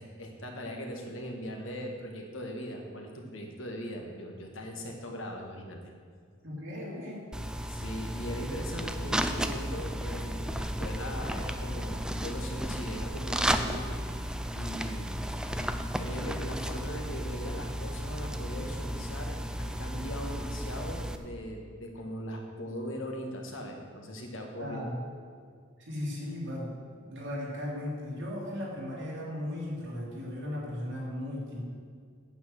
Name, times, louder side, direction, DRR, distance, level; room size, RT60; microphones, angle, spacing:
voice 1, 0.0-5.8 7.7-14.0 14.5-15.1 15.6-24.9, equal, 65° left, 2 dB, 1.6 m, -39 dB
voice 2, 6.4-7.2 24.6-25.0 25.8-31.6, left 1 dB, 60° right, -5 dB, 3.4 m, -36 dB
sound 1, 7.3-21.2, equal, 5° right, 0.4 m, -34 dB
9.1 x 8.2 x 6.5 m, 2.1 s
head